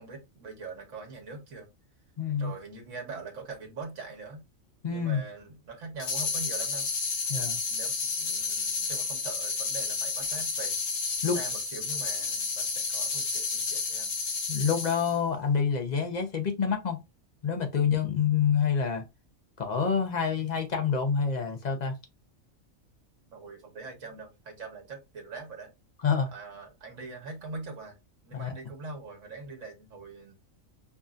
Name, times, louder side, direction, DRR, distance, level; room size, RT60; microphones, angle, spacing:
voice 1, 0.0-1.7 2.3-4.4 4.9-6.9 7.7-10.8 11.2-14.1 23.3-25.7 26.3-28.0 28.2-30.4, right 3 dB, 65° right, 1.5 m, -42 dB
voice 2, 2.2-2.5 4.8-5.2 7.3-7.6 11.2-11.4 14.5-17.0 17.4-19.0 19.6-22.0 26.0-26.3 28.3-28.5, left 6 dB, 40° left, 0.7 m, -27 dB
sound 1, 6.0-15.2, left 4 dB, 70° left, 1.2 m, -31 dB
4.9 x 2.6 x 2.4 m
omnidirectional pair, 1.4 m